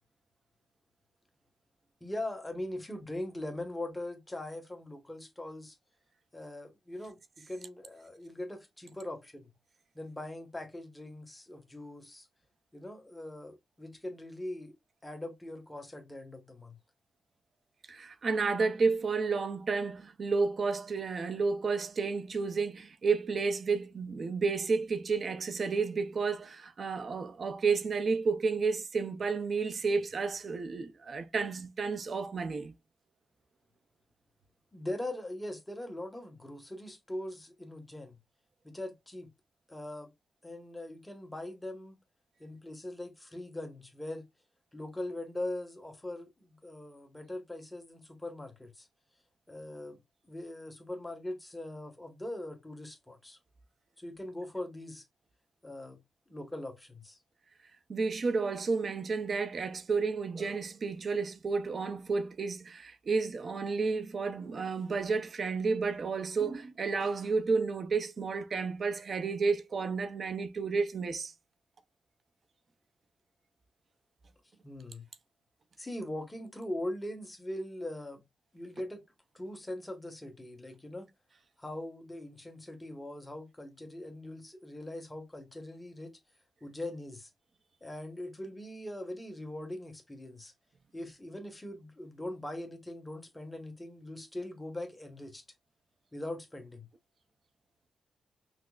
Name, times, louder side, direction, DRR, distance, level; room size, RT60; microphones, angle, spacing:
voice 1, 2.0-5.7 6.3-9.5 9.9-12.3 12.7-14.8 15.0-16.8 34.7-38.2 38.6-39.3 39.7-40.1 40.4-42.0 42.4-44.2 44.7-48.9 49.5-50.0 50.2-53.4 54.0-55.0 55.6-56.0 56.3-57.2 74.6-75.1 75.8-78.2 78.5-79.0 79.3-81.1 81.6-86.2 86.6-87.3 87.8-90.5 90.9-95.4 96.1-96.9, left 1 dB, 10° left, 1.1 m, -41 dB
voice 2, 17.9-32.7 57.9-71.3, right 4 dB, 50° right, 0.6 m, -31 dB
5.8 x 2.0 x 2.3 m
cardioid pair, 105°, 0 cm